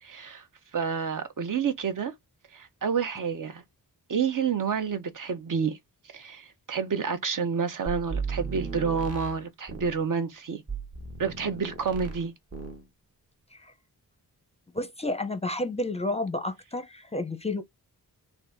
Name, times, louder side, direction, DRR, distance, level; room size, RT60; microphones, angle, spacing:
voice 1, 0.0-0.4 0.7-2.1 2.5-3.6 4.1-5.8 6.1-10.6 11.2-12.3, right 6 dB, 60° right, 0.8 m, -29 dB
sound 1, 7.9-10.0 10.7-12.2 12.5-12.8, right 4 dB, 40° right, 1.1 m, -36 dB
voice 2, 14.7-17.6, left 2 dB, 15° left, 0.5 m, -31 dB
3.9 x 2.6 x 4.5 m
wide cardioid pair, 165°, 36 cm